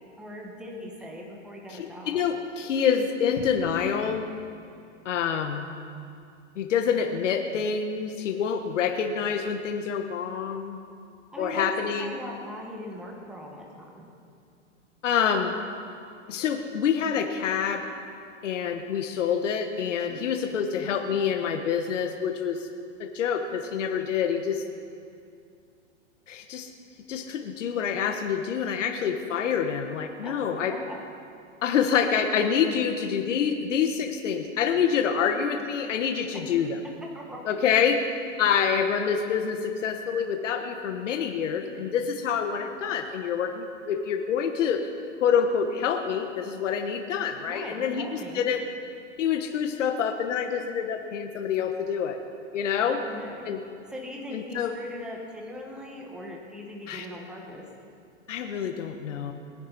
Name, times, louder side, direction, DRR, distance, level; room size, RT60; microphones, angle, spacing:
voice 1, 0.2-2.2 11.3-14.1 20.1-20.3 30.2-31.0 36.4-36.7 37.1-37.4 47.4-48.5 52.9-53.5 53.9-57.7, equal, ahead, -2 dB, 1.5 m, -40 dB
voice 2, 1.7-4.3 5.0-5.7 6.6-10.8 11.4-12.2 15.0-15.6 16.3-17.9 18.4-22.7 23.0-24.6 26.3-26.7 27.1-30.7 31.6-36.8 37.5-38.0 38.4-44.9 45.2-48.6 49.2-52.2 52.5-53.0 53.4-53.6 54.3-54.7 56.9-57.1 58.3-59.3, left 7 dB, 75° left, 6 dB, 1.3 m, -27 dB
22.0 x 10.5 x 4.2 m, 2.4 s
hypercardioid pair, 145°, 37 cm